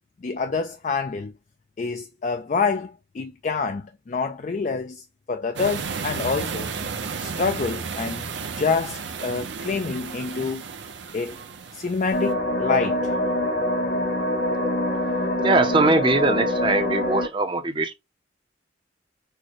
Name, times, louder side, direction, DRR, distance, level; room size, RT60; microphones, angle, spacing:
voice 1, 0.2-1.3 1.8-5.0 5.3-6.7 7.2-8.3 8.6-10.6 11.1-11.3 11.7-13.1, left 4 dB, 40° left, 0.4 m, -27 dB
sound 1, 5.6-12.3, right 5 dB, 75° right, 0.7 m, -33 dB
sound 2, 12.1-17.3, left 1 dB, 60° left, 1.9 m, -24 dB
voice 2, 15.4-17.9, right 2 dB, 25° right, 0.6 m, -21 dB
6.4 x 2.2 x 3.0 m
head